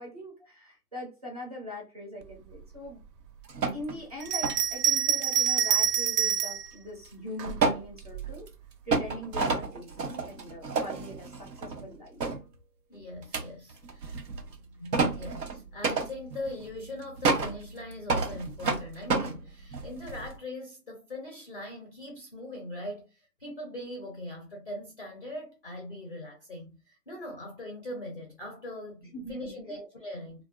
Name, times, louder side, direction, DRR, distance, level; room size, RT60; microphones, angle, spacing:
voice 1, 0.0-3.0 3.7-8.5 8.9-12.2 29.0-29.3, left 1 dB, 25° right, 0.4 m, -41 dB
sound 1, 3.5-4.0 4.3-4.7 7.1-7.2 7.4-8.5 8.9-12.0 12.2-12.4 13.2-20.4, right 4 dB, 90° right, 0.9 m, -30 dB
Bell, 4.2-6.7 7.4-8.3, right 8 dB, 75° right, 0.6 m, -26 dB
voice 2, 12.9-14.1 14.8-30.4, left 1 dB, 35° left, 0.4 m, -41 dB
2.5 x 2.1 x 2.4 m
hypercardioid pair, 160°, 49 cm